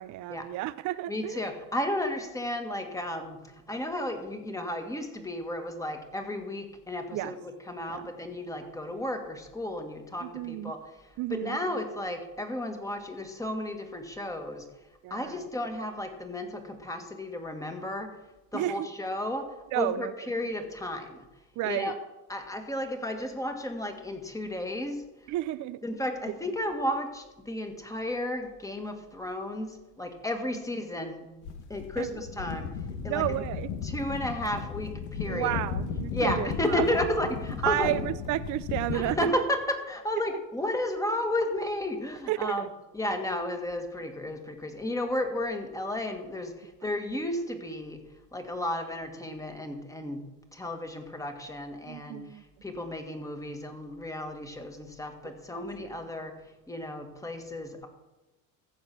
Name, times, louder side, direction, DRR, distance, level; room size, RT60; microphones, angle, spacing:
voice 1, 0.0-1.5 7.1-7.3 7.9-8.0 10.2-10.7 11.2-11.6 15.0-15.4 18.5-18.9 19.7-20.1 21.6-21.9 25.3-25.8 26.3-26.4 32.0-32.1 33.1-33.7 35.3-36.8 37.6-39.2 40.3-40.4 42.3-42.7 51.9-52.4 55.2-55.9, right 15 dB, 50° right, 14 dB, 0.6 m, -32 dB
voice 2, 1.1-10.8 11.3-14.7 15.1-18.1 18.5-21.3 21.6-21.9 22.3-25.0 25.8-31.3 31.7-32.7 33.0-33.3 33.8-35.6 36.1-37.9 38.9-42.7 42.9-48.0 48.3-50.2 50.5-56.3 56.7-57.9, left 1 dB, 10° left, 5 dB, 1.8 m, -33 dB
sound 1, 31.4-39.3, left 6 dB, 80° left, 1.5 m, -35 dB
14.5 x 7.2 x 6.0 m, 1.0 s
supercardioid pair, 100°, 40 cm